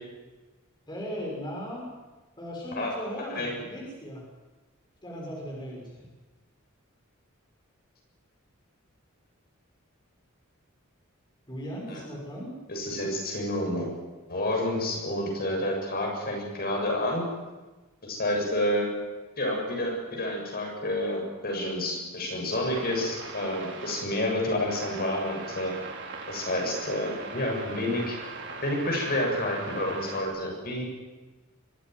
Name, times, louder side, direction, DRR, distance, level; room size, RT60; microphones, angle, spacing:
voice 1, 0.9-1.9 2.4-4.2 5.0-6.1 11.5-12.5, equal, 20° left, -3 dB, 6.3 m, -37 dB
voice 2, 12.7-13.9 14.3-17.3 18.0-18.9 19.4-25.7 26.3-28.2 28.6-30.8, left 1 dB, 45° left, 0 dB, 7.3 m, -29 dB
sound 1, 22.7-24.0 24.7-30.2, right 3 dB, 60° right, 4.4 m, -40 dB
24.0 x 15.5 x 9.5 m, 1.2 s
head